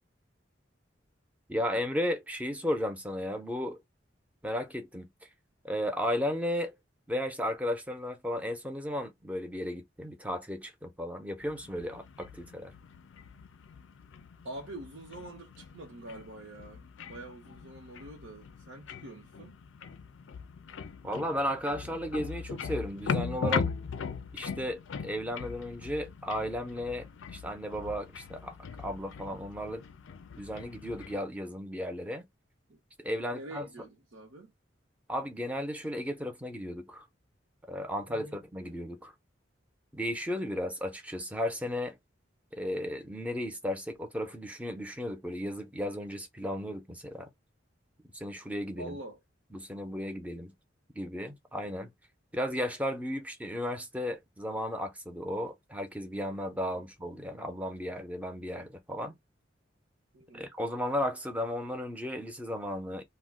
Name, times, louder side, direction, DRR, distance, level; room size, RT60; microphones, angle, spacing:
voice 1, 1.5-3.8 4.4-5.1 5.6-6.8 7.1-12.7 21.0-23.7 24.3-27.1 27.3-29.9 30.4-32.2 33.0-33.7 35.1-37.1 37.7-39.1 39.9-42.0 42.5-47.3 48.1-49.0 49.5-50.5 50.9-51.9 52.3-59.2 60.3-63.0, equal, 10° right, 0.6 m, -34 dB
sound 1, 11.4-31.2, left 6 dB, 75° left, 0.4 m, -40 dB
voice 2, 14.4-19.6 32.7-32.8 33.3-34.5 38.1-38.4 48.8-49.2 56.7-56.9 60.1-60.5, right 1 dB, 80° right, 0.8 m, -45 dB
2.4 x 2.1 x 3.5 m
head